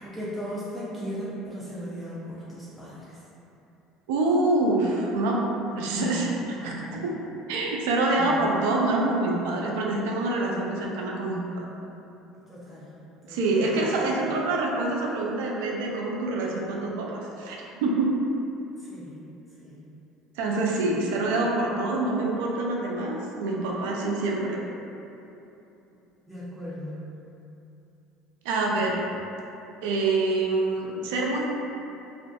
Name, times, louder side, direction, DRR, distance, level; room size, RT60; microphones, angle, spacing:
voice 1, 0.0-3.2 8.1-8.4 12.5-13.0 13.3-14.4 18.8-19.2 19.6-19.9 26.3-27.1, equal, 5° right, -9 dB, 0.6 m, -37 dB
voice 2, 4.1-5.4 5.7-7.2 7.5-11.6 13.3-18.1 20.4-24.6 28.4-29.0 29.8-31.5, right 2 dB, 80° right, -2 dB, 0.4 m, -26 dB
2.4 x 2.4 x 2.2 m, 2.9 s
supercardioid pair, 85°, 0 cm